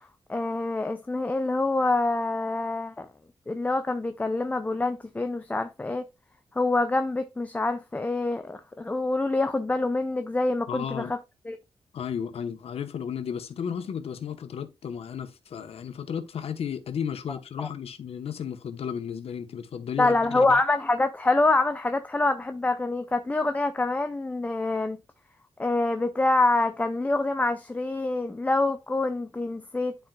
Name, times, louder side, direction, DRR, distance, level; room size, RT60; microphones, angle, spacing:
voice 1, 0.3-3.1 3.5-6.1 6.6-11.2 11.5-11.6 17.6-17.7 20.0-25.0 25.6-30.0, left 2 dB, 15° left, 0.4 m, -26 dB
voice 2, 10.7-11.1 11.9-20.6, left 8 dB, 75° left, 0.9 m, -34 dB
11.5 x 4.5 x 2.2 m
wide cardioid pair, 150°, 10 cm